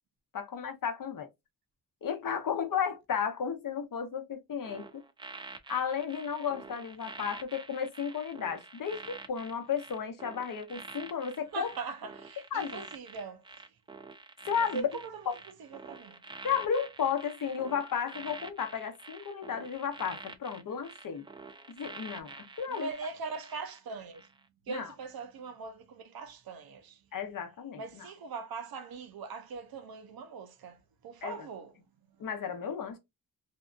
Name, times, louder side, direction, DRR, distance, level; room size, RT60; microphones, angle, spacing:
voice 1, 0.3-1.3 2.0-5.0 5.7-9.0 9.3-11.7 12.5-12.8 14.5-14.9 15.3-15.4 16.4-21.2 21.7-22.9 24.7-24.9 27.1-28.1 31.2-31.4 32.2-33.0, left 7 dB, 55° left, 0.8 m, -33 dB
sound 1, 4.6-23.8 24.1-24.4, right 3 dB, 15° right, 0.3 m, -47 dB
voice 2, 11.5-13.8 14.7-16.2 22.7-24.3 24.7-27.0 27.7-31.7, right 5 dB, 65° right, 0.6 m, -41 dB
2.7 x 2.4 x 2.3 m
cardioid pair, 105°, 40 cm